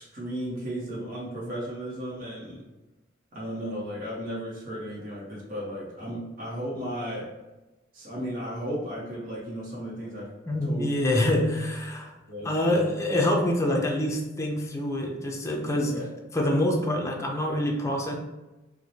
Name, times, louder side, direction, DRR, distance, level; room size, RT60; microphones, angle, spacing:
voice 1, 0.0-2.6 3.3-7.3 7.9-10.3 10.7-10.8 12.3-12.8 15.8-16.1, equal, 50° right, -5 dB, 1.0 m, -35 dB
voice 2, 10.5-12.1 12.4-16.0 16.3-18.2, left 1 dB, 15° left, 0 dB, 0.5 m, -26 dB
4.6 x 2.1 x 2.7 m, 1.1 s
head